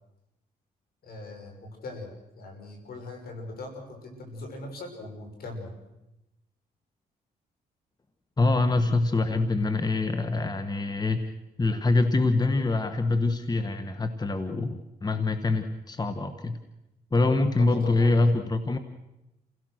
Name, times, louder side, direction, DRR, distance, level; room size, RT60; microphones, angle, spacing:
voice 1, 1.0-2.1 2.4-5.8 17.6-18.3, left 2 dB, 70° left, 3 dB, 6.4 m, -40 dB
voice 2, 8.4-11.2 11.6-16.6 17.1-18.8, left 3 dB, 25° left, 9 dB, 1.5 m, -25 dB
29.0 x 17.0 x 6.5 m, 0.96 s
cardioid pair, 75°, 17 cm